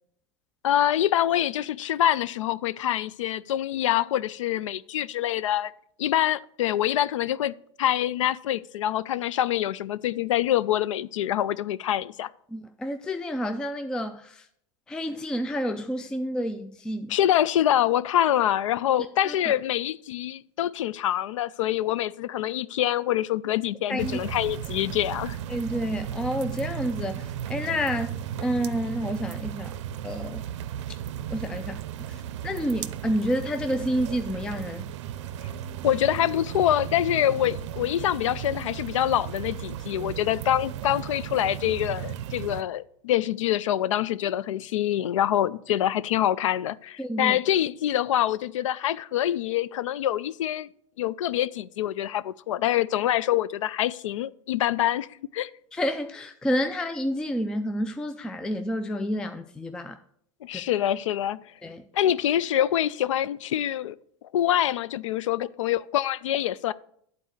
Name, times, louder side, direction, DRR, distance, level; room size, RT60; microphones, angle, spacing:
voice 1, 0.6-5.7 6.0-12.3 17.1-25.4 35.8-50.7 51.0-55.1 55.3-55.5 60.4-61.4 61.9-64.0 64.3-66.7, left 12 dB, 85° left, 0.4 m, -25 dB
voice 2, 12.5-14.5 14.9-17.1 19.2-19.5 23.9-24.2 25.5-28.2 28.4-29.7 30.0-30.4 31.3-34.9 47.0-47.4 55.7-60.0 60.5-60.6 61.6-61.8, equal, 5° left, 0.3 m, -29 dB
sound 1, 24.0-42.6, right 10 dB, 70° right, 0.5 m, -35 dB
8.7 x 4.2 x 6.5 m
supercardioid pair, 130°, 16 cm